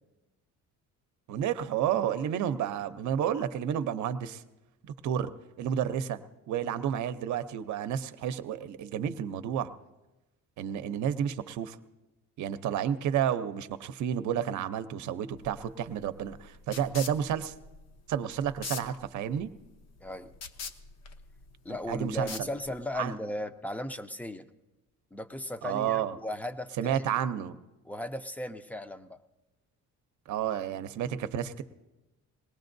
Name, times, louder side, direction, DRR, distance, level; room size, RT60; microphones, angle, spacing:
voice 1, 1.3-4.4 5.0-5.3 5.6-6.2 6.5-9.7 10.6-11.8 12.4-17.5 18.1-19.5 21.9-22.5 23.0-23.1 25.6-26.2 26.8-27.6 30.3-31.6, right 9 dB, 70° right, 10 dB, 0.7 m, -31 dB
sound 1, 15.4-23.0, left 5 dB, 60° left, 0.8 m, -44 dB
voice 2, 20.0-20.3 21.6-24.5 25.1-27.1 27.9-29.2, left 1 dB, 5° left, 10 dB, 0.5 m, -36 dB
21.0 x 18.5 x 2.6 m, 1.1 s
cardioid pair, 135°, 30 cm